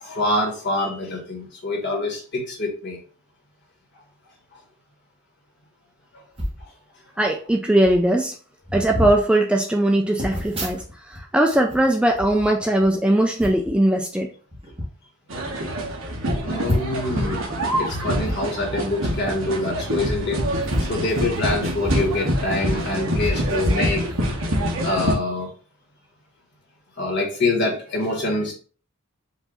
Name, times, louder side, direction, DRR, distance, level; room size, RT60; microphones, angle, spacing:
voice 1, 0.0-3.0 6.1-6.2 16.4-17.5 17.8-20.4 20.8-24.0 24.8-25.5 27.0-28.5, left 2 dB, 55° left, 0 dB, 1.7 m, -25 dB
sound 1, 6.3-6.6 7.5-7.6 7.8-8.1 8.6-9.2 10.2-11.2 11.5-12.9 13.4-13.7 14.5-14.9 15.4-15.5 15.8-15.9 16.6-17.1 18.2-18.4 19.8-20.0 20.6-22.1 22.4-22.5 23.2-24.4 24.9-25.1, equal, 25° right, 1.4 m, -29 dB
voice 2, 7.2-8.4 8.7-14.3, right 1 dB, 5° right, 2 dB, 0.3 m, -20 dB
sound 2, 15.3-25.1, equal, 65° right, 1.1 m, -25 dB
4.7 x 2.7 x 3.8 m, 0.39 s
head